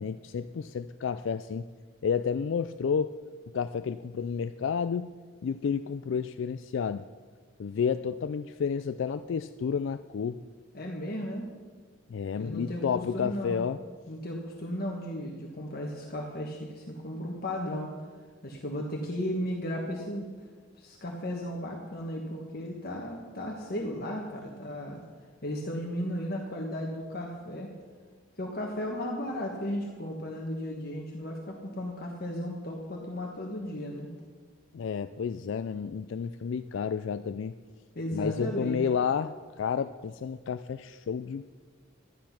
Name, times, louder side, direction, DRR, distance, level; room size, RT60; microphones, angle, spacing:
voice 1, 0.0-1.7 2.0-3.2 3.5-5.1 5.4-7.0 7.6-10.4 12.1-13.8 34.7-37.5 38.1-41.4, left 6 dB, 70° left, 12 dB, 0.3 m, -31 dB
voice 2, 10.7-11.5 12.4-13.7 14.1-17.9 18.4-20.3 20.8-25.0 25.4-27.7 28.4-34.1 37.9-38.8, equal, 50° left, 0 dB, 1.4 m, -35 dB
12.5 x 10.5 x 5.8 m, 1.5 s
head